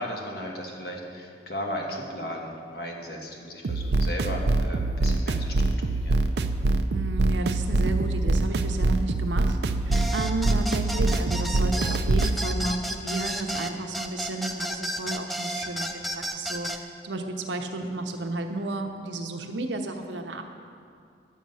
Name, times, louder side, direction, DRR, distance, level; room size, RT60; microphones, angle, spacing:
voice 1, 0.0-6.2, equal, 60° left, 0 dB, 1.4 m, -35 dB
sound 1, 3.6-12.4, right 2 dB, 65° right, 0.5 m, -24 dB
voice 2, 6.9-9.6 9.9-20.4, right 2 dB, 85° right, 5 dB, 0.9 m, -32 dB
sound 2, 9.9-16.8, equal, ahead, 0.4 m, -32 dB
11.0 x 7.4 x 5.5 m, 2.3 s
head